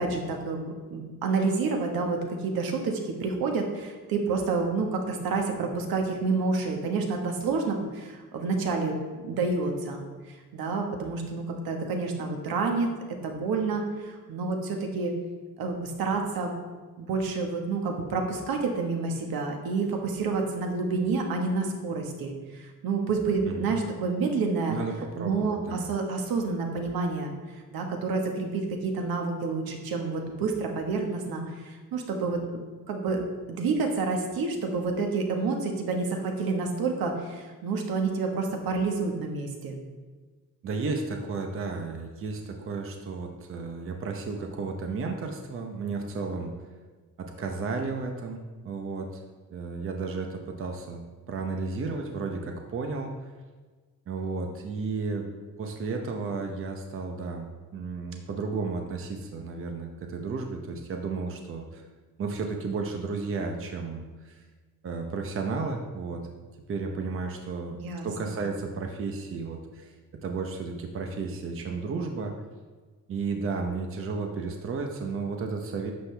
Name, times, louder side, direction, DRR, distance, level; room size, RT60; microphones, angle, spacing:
voice 1, 0.0-9.0 9.2-10.0 10.5-12.9 13.2-15.1 15.6-16.6 17.0-24.8 25.2-27.3 27.7-32.4 32.9-33.2 33.5-39.7 67.7-68.4, right 4 dB, 85° right, 3 dB, 1.6 m, -29 dB
voice 2, 23.5-23.8 24.7-25.9 40.6-46.5 47.2-49.2 49.5-51.0 51.3-53.3 54.1-55.3 55.6-61.8 62.2-64.4 64.8-66.2 66.7-67.8 68.0-70.0 70.2-72.3 73.1-75.9, right 4 dB, 40° right, 3 dB, 0.8 m, -33 dB
11.5 x 7.7 x 3.4 m, 1.4 s
cardioid pair, 180°, 35 cm